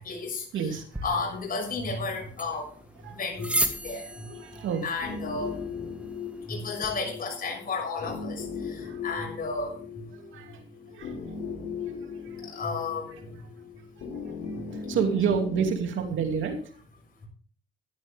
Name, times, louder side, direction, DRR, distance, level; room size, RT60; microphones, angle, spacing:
voice 1, 0.0-0.7 1.0-2.7 3.1-3.5 3.8-4.1 4.8-5.6 6.5-9.7 12.5-13.2, left 4 dB, 45° left, 0 dB, 6.5 m, -32 dB
voice 2, 0.5-1.2 3.0-3.3 3.9-4.0 4.2-5.4 7.5-7.9 8.8-9.2 10.1-11.4 11.8-12.6 13.1-13.5 14.0-16.6, right 6 dB, 75° right, 5 dB, 2.6 m, -32 dB
sound 1, 0.9-6.9, right 1 dB, 5° right, 1.9 m, -36 dB
sound 2, 3.4-15.7, left 5 dB, 70° left, 4.0 m, -39 dB
15.5 x 11.5 x 3.6 m, 0.43 s
cardioid pair, 90°, 20 cm